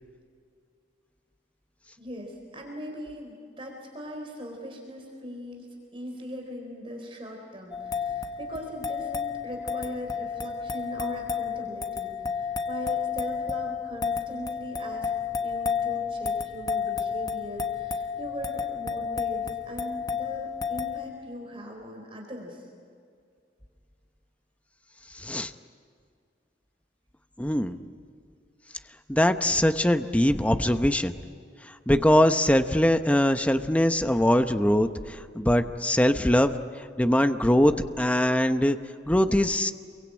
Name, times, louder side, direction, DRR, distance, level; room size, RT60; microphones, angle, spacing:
voice 1, 2.0-15.1 15.4-22.7, equal, 30° right, 2 dB, 4.2 m, -39 dB
sound 1, 7.7-21.1, left 6 dB, 25° left, 1.2 m, -31 dB
voice 2, 25.1-25.5 27.4-27.8 29.1-31.1 31.6-38.8 39.1-39.7, left 1 dB, 10° left, 8 dB, 0.9 m, -22 dB
28.0 x 23.0 x 8.8 m, 2.2 s
head